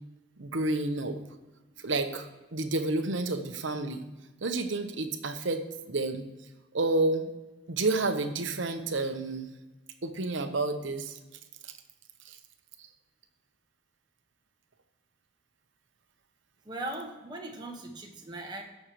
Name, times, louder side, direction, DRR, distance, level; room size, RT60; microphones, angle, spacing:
voice 1, 0.4-1.2 1.8-4.0 4.4-6.2 6.7-7.3 7.7-9.5 10.0-11.2 12.2-12.4, right 2 dB, 70° right, 7 dB, 1.0 m, -30 dB
voice 2, 16.6-18.6, right 2 dB, 20° right, 1 dB, 1.4 m, -39 dB
16.5 x 6.5 x 3.1 m, 1.1 s
head